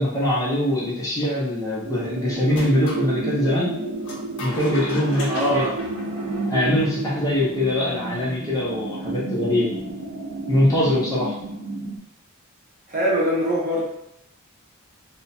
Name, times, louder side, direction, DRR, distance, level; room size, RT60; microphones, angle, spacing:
voice 1, 0.0-3.8 4.4-5.6 6.5-9.7 10.5-11.3, left 1 dB, 15° left, -7 dB, 0.7 m, -22 dB
sound 1, 1.8-12.0, right 2 dB, 80° right, 0.5 m, -31 dB
sound 2, 2.5-3.1 4.0-6.8, left 1 dB, 55° left, 0.6 m, -37 dB
voice 2, 5.3-5.8 12.9-13.8, equal, 40° right, -4 dB, 0.7 m, -22 dB
3.0 x 2.1 x 2.6 m, 0.82 s
head